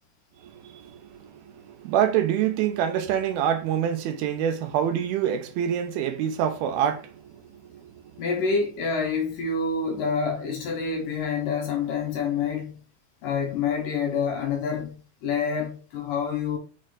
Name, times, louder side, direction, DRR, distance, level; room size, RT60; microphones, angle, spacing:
voice 1, 0.4-8.2, right 9 dB, 80° right, 2.5 m, -26 dB
voice 2, 8.2-12.8 13.2-16.6, left 5 dB, 65° left, 2.4 m, -27 dB
6.1 x 4.4 x 3.9 m
omnidirectional pair, 4.7 m